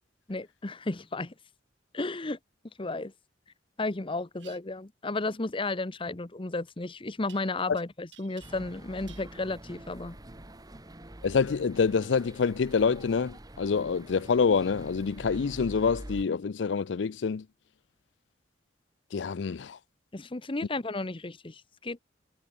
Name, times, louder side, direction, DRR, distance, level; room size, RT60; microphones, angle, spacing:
voice 1, 0.3-1.3 1.9-2.4 2.8-3.1 3.8-10.2 20.1-22.0, left 2 dB, 30° left, 0.9 m, -33 dB
sound 1, 4.4-4.6 7.3-7.8 8.1-8.8 9.1-9.3, right 12 dB, 85° right, 4.5 m, -54 dB
sound 2, 8.4-16.2, right 1 dB, 20° right, 1.7 m, -46 dB
voice 2, 11.2-17.5 19.1-19.8, left 5 dB, 80° left, 0.5 m, -26 dB
head